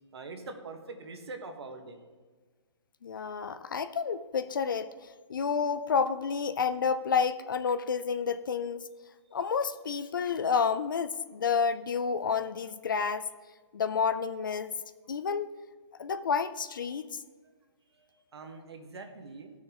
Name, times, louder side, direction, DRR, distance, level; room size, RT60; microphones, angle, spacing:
voice 1, 0.1-2.0 15.1-15.2 17.9-19.5, right 3 dB, 60° right, 5 dB, 1.4 m, -44 dB
voice 2, 3.0-4.9 5.3-8.9 9.3-13.3 13.7-14.7 15.1-15.5 16.0-17.2, left 6 dB, 45° left, 12 dB, 0.4 m, -30 dB
14.5 x 6.4 x 2.9 m, 1.4 s
hypercardioid pair, 175°, 15 cm